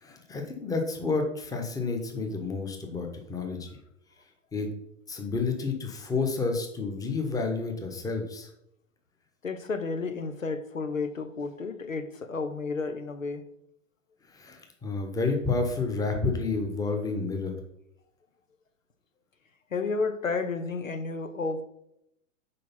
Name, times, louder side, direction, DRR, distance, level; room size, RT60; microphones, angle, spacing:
voice 1, 0.0-3.7 4.5-4.7 5.1-8.5 14.3-17.6, left 4 dB, 10° left, 1.1 m, -30 dB
voice 2, 9.4-13.5 19.7-21.6, left 4 dB, 85° left, 0.9 m, -32 dB
6.8 x 4.9 x 5.6 m
figure-of-eight pair, 105°, 39 cm